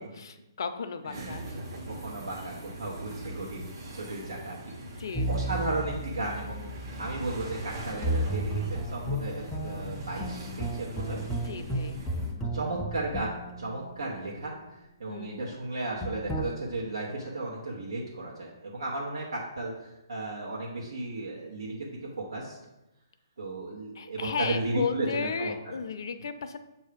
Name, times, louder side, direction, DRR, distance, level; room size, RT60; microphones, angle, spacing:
voice 1, 0.0-1.6 4.8-5.6 11.4-12.0 15.1-15.6 23.9-26.6, left 5 dB, 60° left, 8 dB, 0.5 m, -35 dB
sound 1, 1.1-12.3, right 1 dB, 50° right, 1.2 m, -41 dB
voice 2, 1.1-1.4 1.9-4.6 5.2-6.7 7.0-11.2 12.4-22.6 23.4-25.7, right 2 dB, 80° right, -4 dB, 1.1 m, -35 dB
sound 2, 5.1-14.5 16.0-16.4, right 1 dB, 10° left, 0.4 m, -34 dB
7.1 x 2.7 x 5.0 m, 0.96 s
hypercardioid pair, 155°, 2 cm